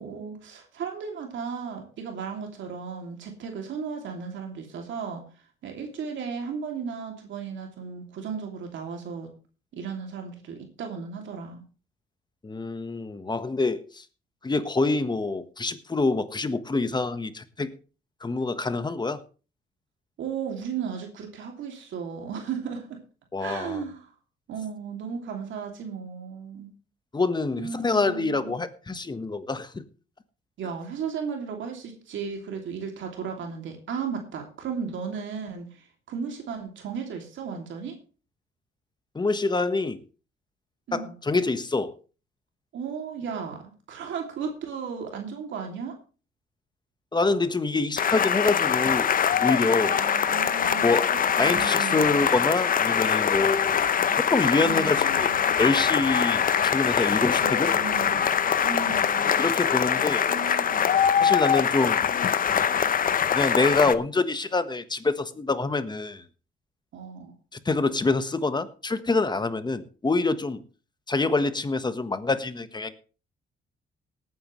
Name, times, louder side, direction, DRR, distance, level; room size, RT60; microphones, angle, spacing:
voice 1, 0.0-5.2 5.6-9.3 9.7-11.6 20.2-23.0 23.4-24.1 24.5-26.7 27.6-28.6 30.6-38.0 40.9-41.1 42.7-46.0 49.8-52.1 54.6-55.5 57.4-59.4 60.3-61.5 66.9-67.3, right 6 dB, 70° right, 3 dB, 2.8 m, -35 dB
voice 2, 12.4-14.0 14.4-17.7 18.2-19.2 23.3-23.8 27.1-29.8 39.1-40.0 40.9-41.9 47.1-49.1 49.4-50.0 50.8-51.1 51.4-53.8 54.3-55.3 55.6-57.7 59.4-60.2 61.2-62.0 63.3-66.2 67.5-70.6 71.1-72.9, left 3 dB, 20° left, 11 dB, 1.3 m, -26 dB
sound 1, 48.0-63.9, left 8 dB, 45° left, 0.8 m, -23 dB
18.5 x 9.4 x 3.2 m, 0.35 s
cardioid pair, 90°, 20 cm